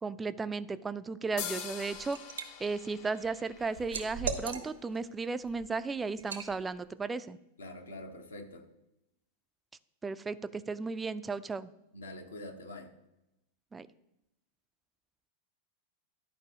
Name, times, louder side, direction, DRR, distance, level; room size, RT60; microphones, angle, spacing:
voice 1, 0.0-2.2 2.6-7.4 10.0-11.7 13.7-13.9, right 4 dB, 15° right, 14 dB, 0.3 m, -35 dB
sound 1, 1.4-4.9, left 9 dB, 45° left, 0.7 m, -44 dB
Liquid, 1.6-2.5 2.9-5.0 5.4-5.6 6.2-6.5, right 5 dB, 70° right, 0.8 m, -38 dB
voice 2, 7.6-8.7 11.9-12.9, left 1 dB, 75° left, 3 dB, 1.0 m, -45 dB
11.0 x 4.6 x 2.8 m, 0.86 s
figure-of-eight pair, 90°, 0 cm